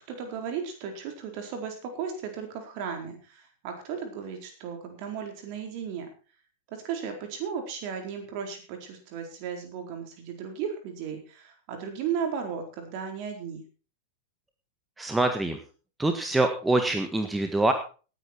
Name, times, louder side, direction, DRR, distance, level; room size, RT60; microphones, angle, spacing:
voice 1, 0.1-6.1 6.7-13.6, right 7 dB, 45° right, 4 dB, 4.3 m, -35 dB
voice 2, 15.0-15.6 16.0-17.7, right 2 dB, 10° right, 6 dB, 1.6 m, -25 dB
18.0 x 9.6 x 4.6 m, 0.37 s
figure-of-eight pair, 90°, 0 cm